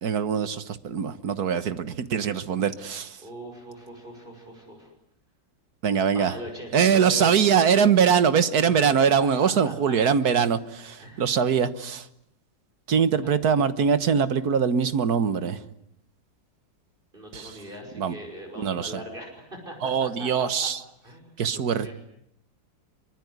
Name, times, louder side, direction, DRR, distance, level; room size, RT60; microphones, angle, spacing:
voice 1, 0.0-3.2 5.8-6.3 6.7-12.1 12.9-15.6 17.3-17.6 18.0-18.2 18.6-18.9 19.8-20.8 21.4-21.9, right 7 dB, 60° right, 13 dB, 1.7 m, -22 dB
voice 2, 3.2-4.9 6.1-7.4 8.6-10.0 11.0-11.4 13.2-13.3 17.1-20.7 21.0-21.9, equal, 25° right, 2 dB, 6.0 m, -41 dB
24.0 x 24.0 x 9.5 m, 0.76 s
omnidirectional pair, 2.0 m